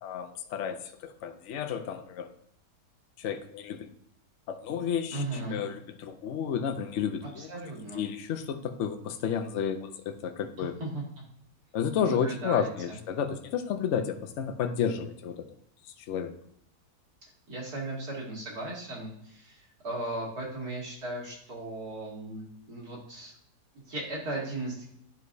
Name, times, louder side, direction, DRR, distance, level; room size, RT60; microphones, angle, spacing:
voice 1, 0.0-2.3 3.2-3.9 4.5-7.5 7.9-10.7 11.7-15.4 16.0-16.3, left 7 dB, 55° left, 7 dB, 0.9 m, -31 dB
voice 2, 5.1-5.6 7.4-8.0 10.6-11.0 12.0-12.7 17.5-23.3 23.7-24.9, right 2 dB, 65° right, -4 dB, 3.1 m, -36 dB
11.0 x 4.8 x 2.7 m, 0.72 s
omnidirectional pair, 1.7 m